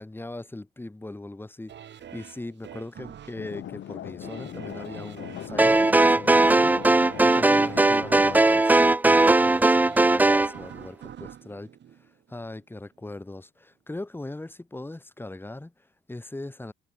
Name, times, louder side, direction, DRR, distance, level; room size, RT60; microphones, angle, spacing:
voice 1, 0.0-6.7 7.2-11.7 12.0-16.7, left 2 dB, 10° left, 1.6 m, -40 dB
sound 1, 1.7-12.6 13.1-13.2, right 9 dB, 65° right, 4.0 m, -46 dB
sound 2, 3.4-8.4, left 12 dB, 75° left, 3.0 m, -39 dB
sound 3, 5.6-10.5, right 2 dB, 10° right, 0.3 m, -19 dB
cardioid pair, 90°, 20 cm